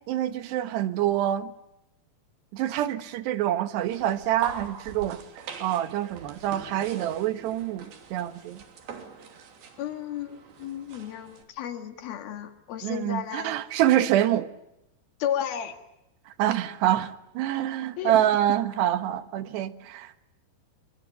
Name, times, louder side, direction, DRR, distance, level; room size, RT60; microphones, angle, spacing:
voice 1, 0.1-1.5 2.5-8.6 12.8-14.5 16.3-20.2, right 12 dB, 80° right, 3.4 m, -26 dB
sound 1, 3.8-11.4, right 5 dB, 60° right, 4.6 m, -43 dB
voice 2, 9.8-13.6 15.2-15.8 18.0-18.2, left 9 dB, 65° left, 3.5 m, -33 dB
28.0 x 24.0 x 8.8 m
omnidirectional pair, 4.9 m